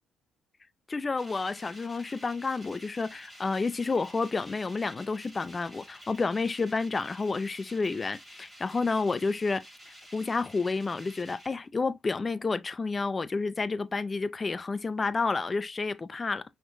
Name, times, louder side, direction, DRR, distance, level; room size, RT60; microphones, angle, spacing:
voice 1, 0.9-9.6 10.1-16.4, left 4 dB, 30° left, 0.5 m, -30 dB
sound 1, 1.2-11.5, equal, 10° right, 3.0 m, -51 dB
5.5 x 3.7 x 2.6 m
cardioid pair, 90°, 0 cm